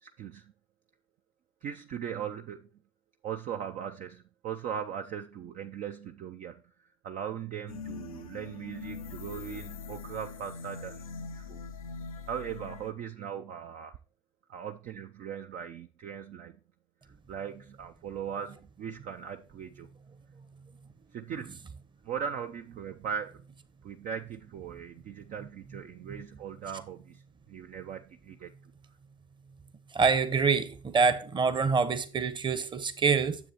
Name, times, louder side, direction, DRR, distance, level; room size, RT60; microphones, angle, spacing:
voice 1, 0.0-0.5 1.6-2.7 3.2-11.0 11.3-11.6 12.3-14.0 14.5-16.6 17.0-19.9 21.1-21.6 22.0-23.4 23.8-27.2 27.5-28.5, right 8 dB, 45° right, 0.6 m, -39 dB
sound 1, 7.7-12.9, left 4 dB, 85° left, 0.5 m, -42 dB
voice 2, 29.9-33.4, right 5 dB, 25° right, 1.0 m, -26 dB
9.8 x 7.3 x 2.9 m
figure-of-eight pair, 65°, 18 cm